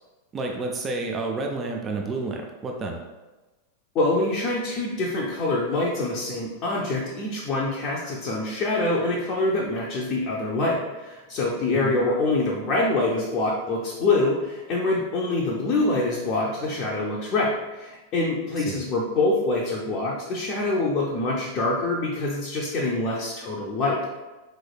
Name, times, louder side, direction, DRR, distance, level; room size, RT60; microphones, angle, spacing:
voice 1, 0.3-3.0 11.7-11.9 18.6-18.8, right 3 dB, 25° right, 2 dB, 0.4 m, -30 dB
voice 2, 3.9-24.0, left 2 dB, 35° left, -3 dB, 0.5 m, -25 dB
4.0 x 3.2 x 2.3 m, 1.2 s
figure-of-eight pair, 90°, 0 cm